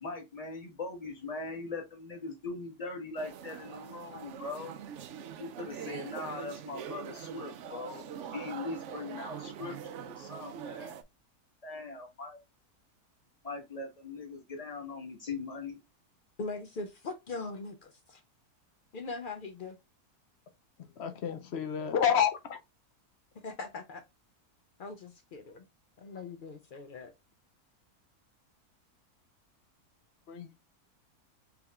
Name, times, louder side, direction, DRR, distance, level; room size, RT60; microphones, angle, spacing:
voice 1, 0.0-4.7 5.4-8.0 8.3-11.0 11.6-12.4 13.4-15.8, left 3 dB, 25° left, 1.2 m, -40 dB
sound 1, 3.2-11.0, right 8 dB, 70° right, 0.7 m, -43 dB
voice 2, 16.4-18.2 18.9-19.8 23.4-24.0 24.8-25.7 26.0-27.1, left 3 dB, 85° left, 0.4 m, -41 dB
voice 3, 21.0-22.6 30.3-30.5, left 8 dB, 60° left, 0.7 m, -29 dB
4.7 x 3.4 x 2.3 m
omnidirectional pair, 1.6 m